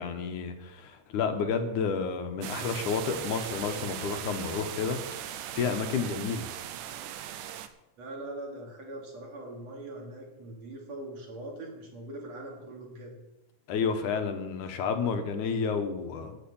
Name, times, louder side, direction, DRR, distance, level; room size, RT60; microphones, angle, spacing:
voice 1, 0.0-5.0 5.3-6.5 13.7-16.4, left 5 dB, 75° left, 7 dB, 2.5 m, -30 dB
sound 1, 2.4-7.7, right 11 dB, 85° right, 2.3 m, -38 dB
voice 2, 8.0-13.2, right 1 dB, 55° right, -1 dB, 3.8 m, -42 dB
13.5 x 6.3 x 8.6 m, 0.95 s
omnidirectional pair, 3.6 m